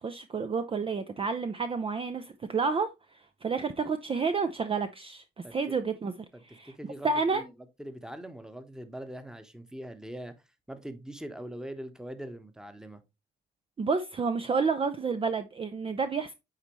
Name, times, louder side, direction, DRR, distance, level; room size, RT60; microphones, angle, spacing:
voice 1, 0.0-6.1 6.4-6.7 7.0-7.4 13.8-16.3, right 4 dB, 30° right, 0.5 m, -30 dB
voice 2, 5.4-5.8 6.3-7.5 7.8-10.3 10.7-13.0, right 1 dB, 5° right, 1.0 m, -42 dB
8.9 x 4.0 x 3.1 m
cardioid pair, 90°, 20 cm